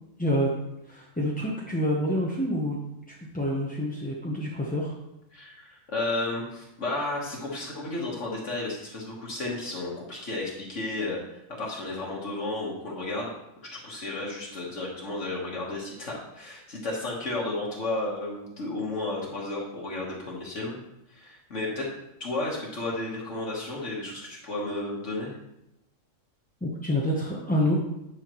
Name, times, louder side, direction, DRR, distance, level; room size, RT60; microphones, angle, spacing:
voice 1, 0.9-2.8 3.1-4.9 26.6-27.8, equal, 10° left, -4 dB, 0.6 m, -27 dB
voice 2, 5.3-13.3 13.8-20.7 21.1-21.9 22.2-25.3, left 2 dB, 60° left, -4 dB, 1.7 m, -33 dB
9.8 x 5.7 x 3.0 m, 0.87 s
omnidirectional pair, 1.4 m